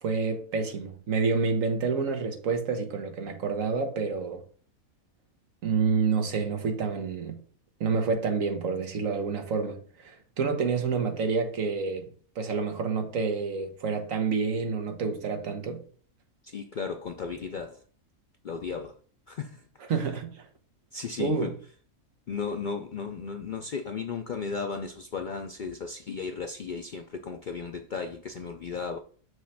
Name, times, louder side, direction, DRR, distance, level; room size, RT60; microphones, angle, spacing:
voice 1, 0.0-4.4 5.6-7.4 7.8-15.8 19.9-20.5 21.2-21.5, right 5 dB, 65° right, 1.5 m, -28 dB
voice 2, 16.5-17.8 18.4-18.9 19.3-19.6 20.9-21.5 22.3-29.0, left 5 dB, 85° left, 0.4 m, -35 dB
6.4 x 3.1 x 5.7 m
omnidirectional pair, 1.5 m